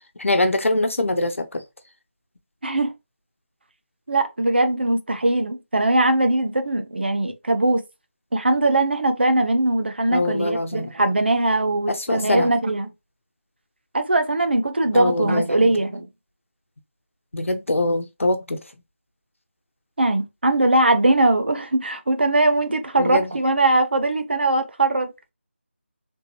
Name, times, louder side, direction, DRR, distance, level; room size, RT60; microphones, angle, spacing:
voice 1, 0.2-1.6 10.1-10.9 11.9-12.5 14.9-15.7 17.3-18.6 23.0-23.3, left 2 dB, 85° left, 0.9 m, -23 dB
voice 2, 2.6-2.9 4.1-7.8 8.3-12.9 13.9-16.1 20.0-25.1, right 2 dB, 55° right, 0.8 m, -20 dB
3.5 x 2.9 x 2.8 m
figure-of-eight pair, 175°, 7 cm